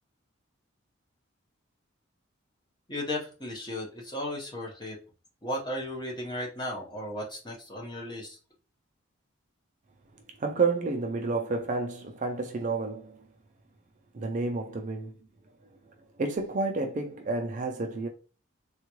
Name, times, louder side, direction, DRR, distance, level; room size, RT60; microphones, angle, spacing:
voice 1, 2.9-5.0 5.4-8.4, left 1 dB, 20° left, 0.9 m, -35 dB
voice 2, 10.4-13.3 14.1-15.1 16.2-18.1, right 3 dB, 35° right, 0.4 m, -30 dB
3.6 x 2.3 x 3.0 m
head